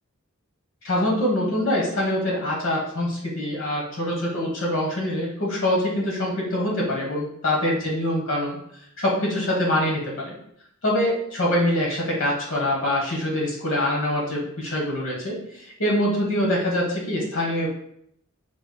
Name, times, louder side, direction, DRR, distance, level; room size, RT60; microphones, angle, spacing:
voice 1, 0.8-8.6 9.0-10.0 10.8-17.7, left 1 dB, 65° left, -3 dB, 1.1 m, -24 dB
4.8 x 4.0 x 2.2 m, 0.70 s
head